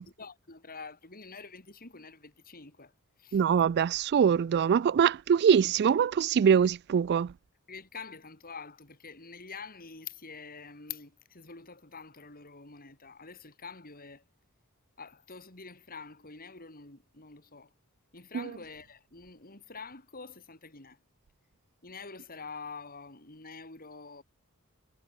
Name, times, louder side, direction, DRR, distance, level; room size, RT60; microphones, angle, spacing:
voice 1, 0.2-2.9 3.2-3.4 7.7-14.2 15.0-17.7 18.1-21.0 21.8-24.2, left 5 dB, 40° left, 4.3 m, -46 dB
voice 2, 3.3-7.3 18.3-18.4, right 7 dB, 50° right, 0.3 m, -23 dB
head